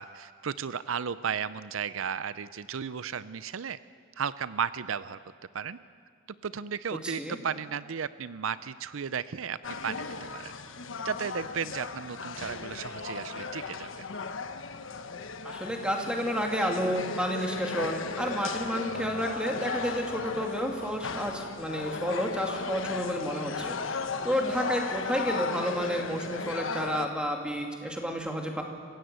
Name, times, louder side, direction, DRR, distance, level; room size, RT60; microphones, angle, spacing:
voice 1, 0.0-3.8 4.2-5.2 5.5-5.8 6.4-9.6 9.8-10.1 10.3-10.5 11.0-14.0, right 7 dB, 80° right, 15 dB, 0.6 m, -34 dB
voice 2, 7.0-7.4 15.4-28.6, equal, 5° right, 2 dB, 2.5 m, -31 dB
sound 1, 9.6-27.1, left 4 dB, 70° left, 1.2 m, -36 dB
27.0 x 16.0 x 8.2 m, 2.1 s
head